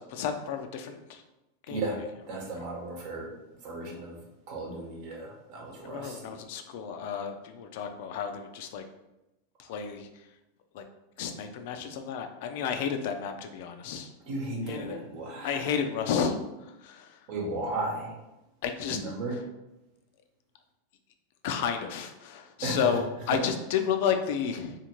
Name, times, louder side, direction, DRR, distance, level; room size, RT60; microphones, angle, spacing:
voice 1, 0.1-1.2 1.7-1.8 5.8-8.8 9.6-10.1 10.7-10.9 11.2-14.1 14.7-15.0 15.4-17.2 18.6-19.0 21.4-24.8, left 7 dB, 65° left, 7 dB, 0.3 m, -31 dB
voice 2, 1.7-3.3 3.6-6.4 14.3-15.7 17.3-18.1 18.9-19.4 22.6-23.0 23.3-23.4, right 2 dB, 55° right, -1 dB, 0.9 m, -35 dB
2.5 x 2.4 x 2.9 m, 0.95 s
hypercardioid pair, 110°, 0 cm